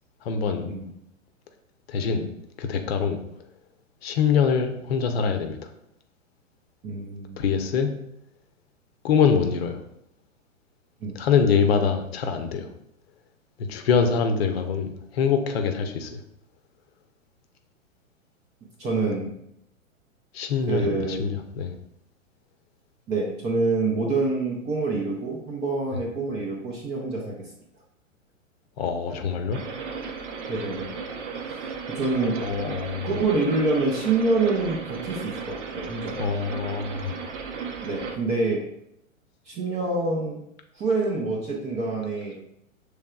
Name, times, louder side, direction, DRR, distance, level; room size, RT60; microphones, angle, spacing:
voice 1, 0.2-0.7 1.9-2.3 2.6-3.2 4.0-5.6 7.4-7.9 9.0-9.8 11.2-12.7 13.6-16.2 20.3-21.7 28.8-29.6 32.2-33.1 36.2-37.2, left 6 dB, 50° left, 6 dB, 0.7 m, -24 dB
voice 2, 6.8-7.4 11.0-11.2 18.8-19.3 20.7-21.2 23.1-27.4 30.5-30.9 31.9-32.4 33.0-36.2 37.8-38.6 39.5-40.4 40.7-42.4, right 3 dB, 15° right, -1 dB, 0.5 m, -26 dB
sound 1, 29.5-38.2, right 5 dB, 60° right, 0.8 m, -35 dB
6.2 x 3.3 x 2.3 m, 0.80 s
figure-of-eight pair, 115°, 41 cm